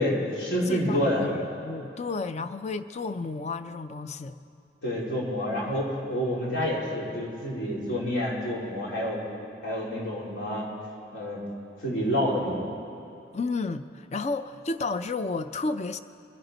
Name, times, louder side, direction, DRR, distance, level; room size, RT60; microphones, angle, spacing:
voice 1, 0.0-1.3 4.8-9.2 9.6-10.7 11.1-11.4 11.8-12.6, equal, 70° left, -5 dB, 3.4 m, -28 dB
voice 2, 0.6-4.4 13.3-16.0, left 3 dB, 40° left, 11 dB, 0.5 m, -32 dB
22.5 x 10.5 x 4.0 m, 2.7 s
head